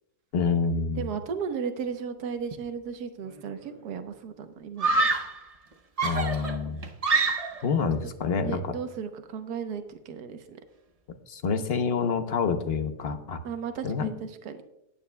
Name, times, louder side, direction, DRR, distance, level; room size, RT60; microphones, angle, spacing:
voice 1, 0.3-1.1 6.0-6.8 7.6-8.7 11.3-13.4 13.8-14.1, left 5 dB, 50° left, 8 dB, 0.8 m, -27 dB
voice 2, 1.0-5.0 8.4-10.6 13.4-14.6, right 6 dB, 70° right, 7 dB, 1.5 m, -35 dB
Screaming, 3.2-3.7 4.8-5.4 6.0-7.7, right 3 dB, 50° right, 0.4 m, -26 dB
19.0 x 9.4 x 2.2 m, 0.81 s
omnidirectional pair, 1.8 m